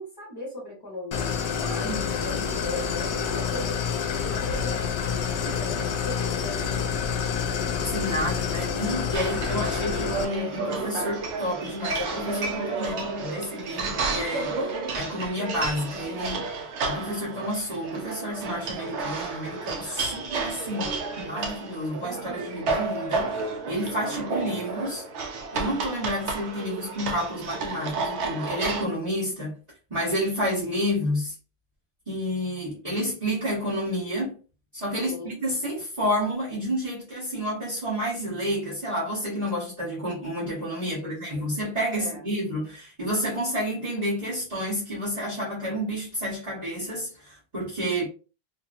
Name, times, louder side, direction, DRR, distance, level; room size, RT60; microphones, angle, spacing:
voice 1, 0.0-7.7 9.2-10.1 20.0-20.7 34.9-35.4 40.8-41.5 41.9-42.2, left 1 dB, 20° left, 1.0 m, -39 dB
Idling, 1.1-10.2, left 6 dB, 80° left, 0.8 m, -28 dB
voice 2, 7.8-14.6 14.9-16.5 16.8-25.0 25.5-29.5 29.9-31.3 32.1-34.4 34.7-48.1, equal, 40° right, 1.3 m, -30 dB
sound 1, 9.1-28.9, right 4 dB, 80° right, 0.9 m, -31 dB
2.8 x 2.6 x 2.4 m
omnidirectional pair, 1.1 m